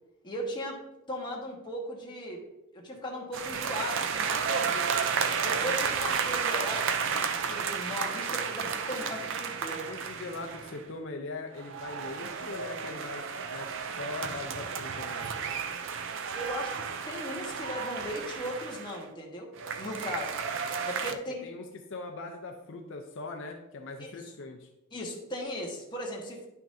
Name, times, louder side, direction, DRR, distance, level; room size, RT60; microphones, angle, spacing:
voice 1, 0.2-0.8 1.1-2.4 2.7-4.9 5.4-7.2 7.5-9.8 16.3-19.5 19.8-20.4 20.9-21.5 24.0-24.3 24.9-26.5, equal, 20° left, -2 dB, 1.3 m, -37 dB
sound 1, 3.3-10.9 11.5-19.0 19.6-21.1, right 6 dB, 60° right, 0.5 m, -32 dB
voice 2, 9.6-15.4 20.0-20.2 21.1-24.7, left 3 dB, 60° left, 3 dB, 0.7 m, -41 dB
10.0 x 5.9 x 2.7 m, 0.94 s
head